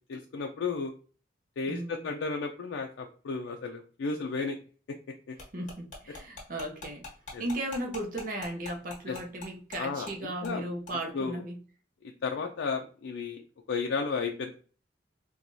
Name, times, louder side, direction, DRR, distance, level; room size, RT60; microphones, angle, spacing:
voice 1, 0.1-0.9 1.6-4.6 5.3-5.4 7.3-7.4 9.1-9.2 9.8-10.1 10.4-10.6 11.1-11.4 12.2-13.4 13.7-14.5, left 4 dB, 90° left, 2 dB, 0.4 m, -33 dB
voice 2, 1.7-2.1 5.5-7.0 7.4-11.6, right 1 dB, 45° right, 2 dB, 0.6 m, -36 dB
sound 1, 5.4-9.8 10.1-10.2 10.4-10.6 10.9-11.0, left 3 dB, 40° left, 1.3 m, -43 dB
4.4 x 2.3 x 2.6 m, 0.39 s
head